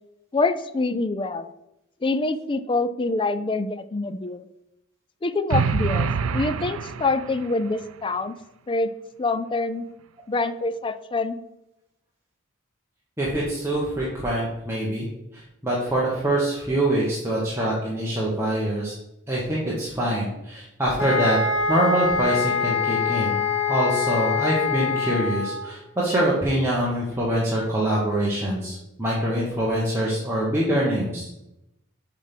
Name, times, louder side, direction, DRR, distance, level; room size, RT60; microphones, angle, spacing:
voice 1, 0.3-1.5 2.0-4.4 5.2-6.1 6.3-8.3 8.7-8.9 9.2-9.9 10.3-11.4, left 3 dB, 25° left, 12 dB, 0.4 m, -25 dB
sound 1, 5.5-7.6, right 5 dB, 80° right, 0.4 m, -25 dB
voice 2, 13.2-15.1 15.3-18.9 19.3-21.4 21.7-31.2, right 1 dB, 10° right, -6 dB, 1.2 m, -24 dB
sound 2, 21.0-25.7, left 5 dB, 80° left, 2.0 m, -24 dB
7.3 x 3.5 x 5.8 m, 0.88 s
head